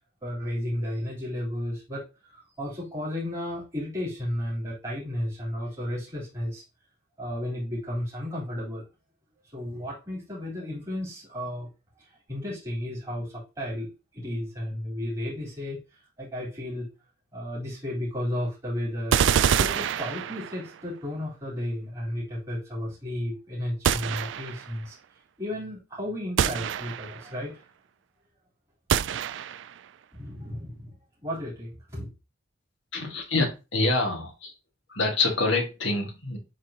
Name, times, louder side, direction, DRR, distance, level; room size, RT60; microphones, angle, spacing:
voice 1, 0.2-6.6 7.2-8.8 9.5-11.7 12.1-15.8 16.2-16.9 17.3-19.2 19.6-25.0 25.4-27.6 30.1-30.9 31.2-32.1, left 1 dB, 20° right, -7 dB, 3.7 m, -33 dB
sound 1, 19.1-20.7 23.8-24.7 26.4-27.3 28.9-29.8, right 8 dB, 70° right, 0.4 m, -26 dB
voice 2, 32.9-34.5 34.9-36.4, left 3 dB, 75° left, 2 dB, 2.0 m, -26 dB
8.9 x 4.0 x 2.9 m, 0.28 s
head